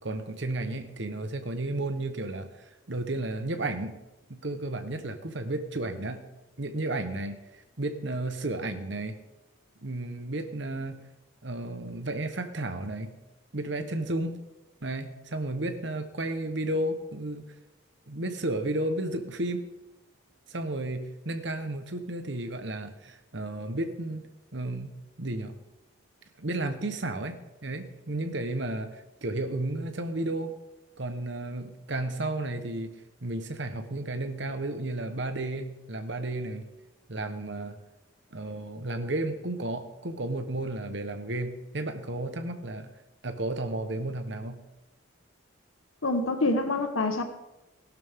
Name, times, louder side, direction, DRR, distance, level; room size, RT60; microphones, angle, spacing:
voice 1, 0.0-4.0 4.3-6.2 6.6-9.2 9.8-11.0 11.4-13.1 13.5-14.4 14.8-17.4 18.1-19.6 20.5-24.2 24.5-24.9 25.2-25.5 26.4-30.5 31.0-36.7 37.1-37.8 38.3-42.9 43.2-44.6, right 2 dB, 60° right, 8 dB, 1.2 m, -33 dB
voice 2, 46.0-47.2, left 2 dB, 80° left, 7 dB, 1.3 m, -26 dB
16.5 x 12.0 x 3.7 m, 0.99 s
head